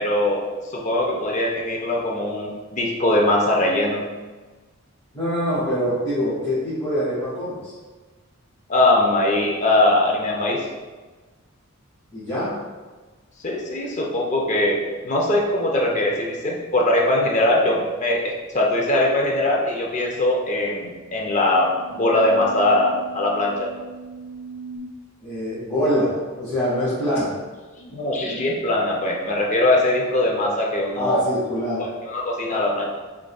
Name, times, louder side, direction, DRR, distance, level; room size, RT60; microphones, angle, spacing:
voice 1, 0.0-4.0 8.7-10.6 13.4-23.7 27.8-31.3 31.8-32.8, left 1 dB, 35° left, -1 dB, 0.5 m, -21 dB
voice 2, 5.1-7.7 12.1-12.5 25.2-27.3 30.9-31.8, equal, 15° left, -13 dB, 1.4 m, -24 dB
sound 1, 20.4-24.8, right 4 dB, 55° left, 1.0 m, -40 dB
5.0 x 3.5 x 2.3 m, 1.3 s
head